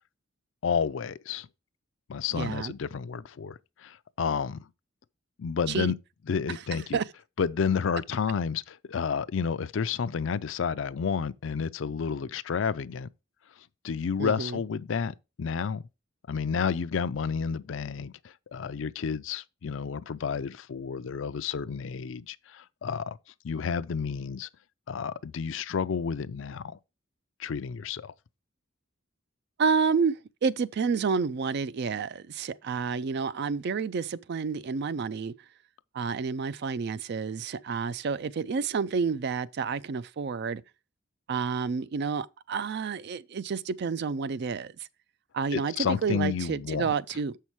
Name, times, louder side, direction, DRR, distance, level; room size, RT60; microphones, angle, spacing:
voice 1, 0.6-1.5 2.1-4.6 5.4-5.9 6.3-7.0 7.4-13.1 13.8-15.8 16.3-23.2 23.4-24.5 24.9-26.8 27.4-28.1 45.5-46.9, left 6 dB, 65° left, 0.4 m, -30 dB
voice 2, 2.3-2.7 5.7-5.9 6.5-7.0 14.2-14.6 29.6-35.3 35.9-40.6 41.3-44.7 45.3-47.4, right 5 dB, 55° right, 0.4 m, -29 dB
7.1 x 5.6 x 4.6 m
head